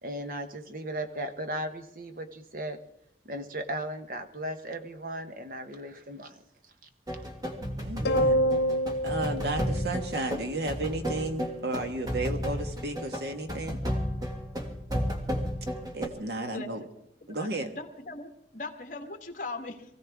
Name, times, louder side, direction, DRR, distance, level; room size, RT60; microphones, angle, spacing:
voice 1, 0.0-2.8 3.2-6.4, right 1 dB, 50° right, 8 dB, 1.2 m, -36 dB
sound 1, 7.1-16.1, equal, 20° right, 1.7 m, -33 dB
voice 2, 7.8-8.5 9.0-13.8 15.9-16.8 17.3-17.7, right 2 dB, 70° right, 6 dB, 1.6 m, -33 dB
sound 2, 8.1-10.7, equal, 75° left, 1.1 m, -27 dB
voice 3, 17.2-19.8, left 3 dB, 45° left, 6 dB, 1.5 m, -40 dB
23.5 x 16.0 x 3.6 m, 0.79 s
head